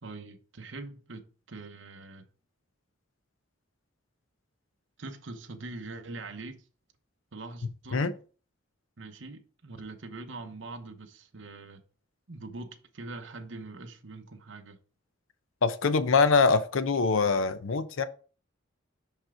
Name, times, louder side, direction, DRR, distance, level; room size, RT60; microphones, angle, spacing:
voice 1, 0.0-2.3 5.0-6.7 7.3-8.0 9.0-11.8 12.3-14.8, right 3 dB, 65° right, 0.9 m, -43 dB
voice 2, 15.6-18.0, left 4 dB, 75° left, 0.6 m, -24 dB
5.8 x 5.4 x 3.7 m
head